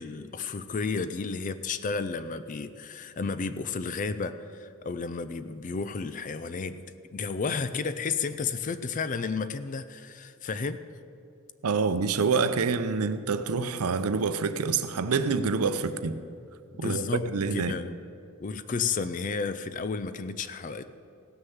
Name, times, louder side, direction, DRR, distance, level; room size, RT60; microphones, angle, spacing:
voice 1, 0.0-6.8 7.1-10.8 16.7-17.9 18.4-20.9, left 4 dB, 35° left, 0.4 m, -32 dB
voice 2, 11.6-16.2 16.8-17.8, right 5 dB, 85° right, 0.6 m, -27 dB
16.0 x 6.6 x 7.1 m
head